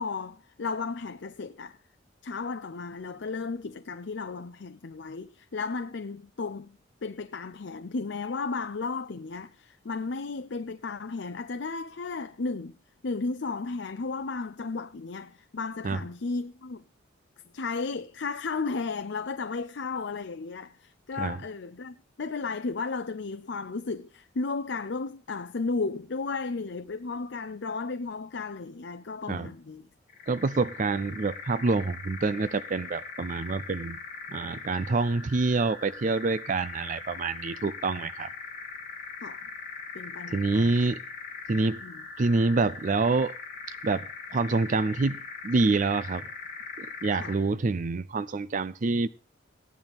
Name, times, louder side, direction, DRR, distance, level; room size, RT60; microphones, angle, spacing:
voice 1, 0.0-1.8 2.2-12.8 13.0-16.8 17.5-29.9 39.2-39.5 39.9-40.8 41.8-42.0 47.2-47.4, left 4 dB, 65° left, 0.6 m, -34 dB
sound 1, 30.1-47.5, left 4 dB, 45° left, 1.8 m, -41 dB
voice 2, 30.3-34.0 34.3-38.3 40.3-41.0 41.5-41.8 42.2-43.3 43.8-46.3 46.8-49.1, right 3 dB, 40° right, 0.5 m, -27 dB
16.5 x 10.5 x 3.6 m
head